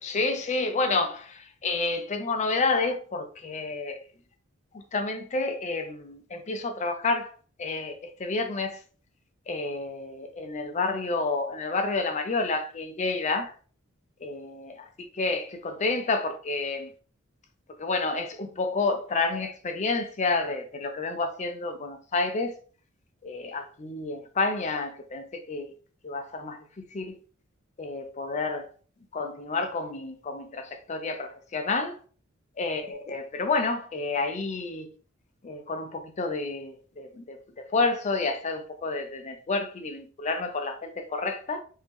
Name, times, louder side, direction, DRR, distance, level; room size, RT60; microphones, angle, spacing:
voice 1, 0.0-4.0 4.7-7.3 7.6-8.8 9.5-13.5 14.2-14.7 15.1-16.9 17.8-22.6 23.2-25.7 26.0-27.2 27.8-28.7 29.1-32.0 32.6-34.9 35.4-41.6, left 3 dB, 35° left, 0.4 m, -29 dB
2.9 x 2.7 x 3.5 m
head